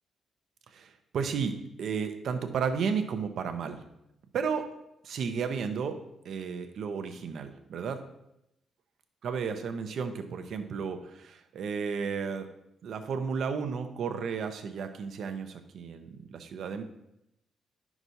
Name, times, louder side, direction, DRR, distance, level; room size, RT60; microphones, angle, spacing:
voice 1, 0.7-1.5 1.8-3.8 4.3-4.7 5.0-6.0 6.2-8.0 9.2-12.5 12.8-16.8, right 6 dB, 60° right, 7 dB, 0.7 m, -33 dB
11.0 x 6.0 x 2.7 m, 0.83 s
cardioid pair, 170°, 0 cm